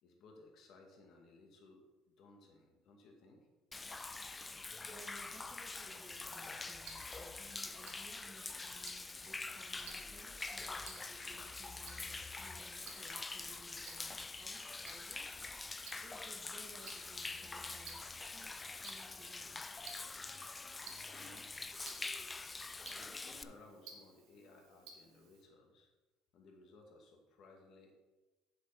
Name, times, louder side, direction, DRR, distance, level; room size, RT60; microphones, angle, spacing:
voice 1, 0.0-3.5 20.8-21.7 22.8-25.9 26.3-27.9, left 2 dB, 55° left, 2 dB, 2.2 m, -60 dB
Human voice / Rain / Stream, 3.7-23.4, left 3 dB, 20° left, 0.4 m, -45 dB
voice 2, 4.4-19.6, right 2 dB, 15° right, 2 dB, 1.4 m, -60 dB
Tick-tock, 6.4-25.4, right 4 dB, 80° right, 1.8 m, -59 dB
7.5 x 6.6 x 5.2 m, 1.1 s
supercardioid pair, 105°, 0 cm